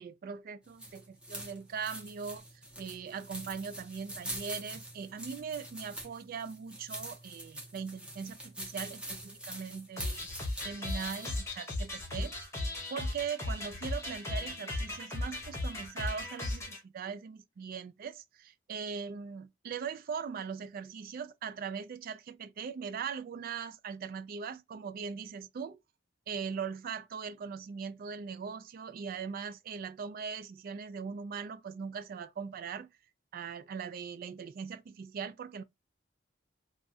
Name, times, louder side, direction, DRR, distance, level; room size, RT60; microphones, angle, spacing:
voice 1, 0.0-2.4 2.8-10.2 10.6-12.3 12.9-25.8 26.3-32.9 33.3-35.6, right 6 dB, 50° right, 0.3 m, -40 dB
sound 1, 0.6-11.4, right 1 dB, 5° right, 0.9 m, -45 dB
sound 2, 10.0-16.8, left 2 dB, 15° left, 1.1 m, -37 dB
3.1 x 2.4 x 2.5 m
head